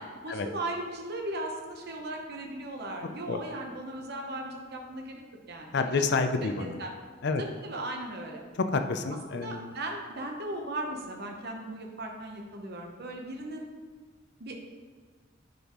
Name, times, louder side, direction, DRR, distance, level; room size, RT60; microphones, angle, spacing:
voice 1, 0.0-5.2 5.5-5.9 6.4-6.5 6.8-6.9 7.6-8.4 9.3-13.7 14.4-14.6, right 1 dB, 55° right, 1 dB, 0.9 m, -37 dB
voice 2, 5.7-6.8 7.2-7.4 8.5-9.8, left 4 dB, 60° left, 7 dB, 0.5 m, -29 dB
10.5 x 5.3 x 3.1 m, 1.5 s
head